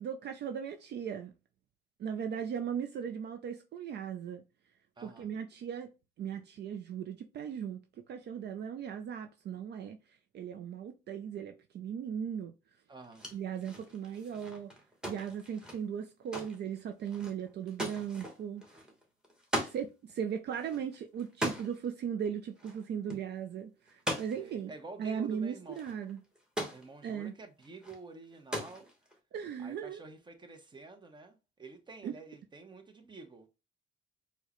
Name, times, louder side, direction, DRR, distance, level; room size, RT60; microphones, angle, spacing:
voice 1, 0.0-1.3 2.0-4.4 5.0-5.9 6.2-7.8 8.1-10.0 10.3-12.5 13.3-14.7 15.1-18.6 19.7-24.7 25.0-26.2 27.0-27.3 29.3-30.0 32.0-32.1, right 8 dB, 55° right, 0.4 m, -37 dB
voice 2, 5.0-5.3 12.9-13.3 24.3-25.8 26.7-28.9 29.6-33.5, right 3 dB, 25° right, 0.8 m, -49 dB
sound 1, 13.0-19.8 20.1-20.2 20.5-21.9 22.6-22.8 23.1-23.3 23.9-24.6 25.4-25.5 25.7-26.9 27.6-28.0 28.3-29.2, equal, 5° right, 1.2 m, -39 dB
4.5 x 2.2 x 2.9 m
cardioid pair, 90°, 20 cm